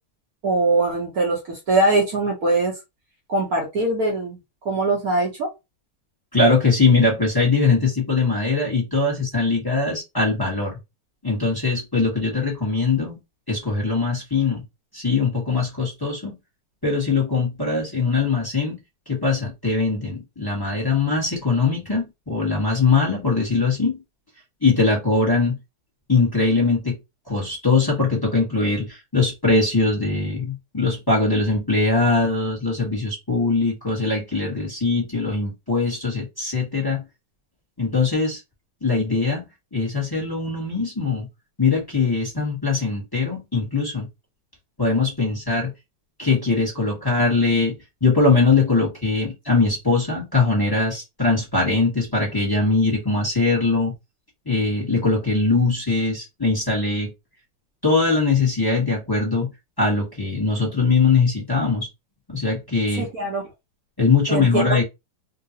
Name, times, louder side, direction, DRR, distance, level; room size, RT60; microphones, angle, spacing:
voice 1, 0.4-2.7 3.3-4.4 4.6-5.5 63.0-63.4 64.3-64.8, right 2 dB, 60° right, 1.0 m, -22 dB
voice 2, 6.3-10.8 11.2-13.2 13.5-14.6 14.9-16.4 16.8-18.8 19.1-24.0 24.6-25.5 26.1-27.0 27.3-37.0 37.8-38.4 38.8-39.4 39.7-41.3 41.6-44.1 44.8-45.7 46.2-47.7 48.0-53.9 54.5-57.1 57.8-59.5 59.8-61.9 62.3-63.1 64.0-64.8, left 3 dB, 15° left, 0.7 m, -21 dB
3.7 x 2.3 x 2.8 m
omnidirectional pair, 2.4 m